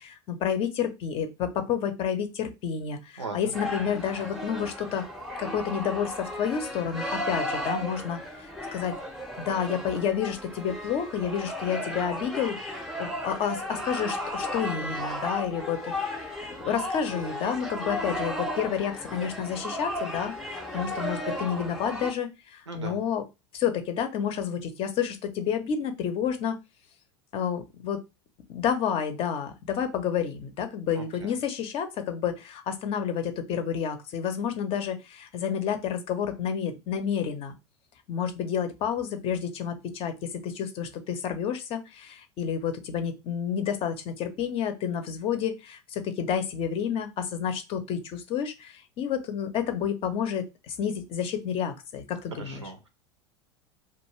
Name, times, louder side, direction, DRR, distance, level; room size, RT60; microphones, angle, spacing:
voice 1, 0.0-5.0 5.4-9.0 9.4-16.2 16.6-23.2 23.5-26.6 27.3-28.0 28.5-37.5 38.1-52.6, left 8 dB, 40° left, 8 dB, 0.6 m, -30 dB
voice 2, 3.2-3.5 22.7-23.0 31.0-31.3 52.4-52.9, right 4 dB, 90° right, 7 dB, 0.6 m, -39 dB
sound 1, 3.5-22.1, left 1 dB, ahead, 0.6 m, -34 dB
2.5 x 2.3 x 3.0 m, 0.25 s
figure-of-eight pair, 85°, 15 cm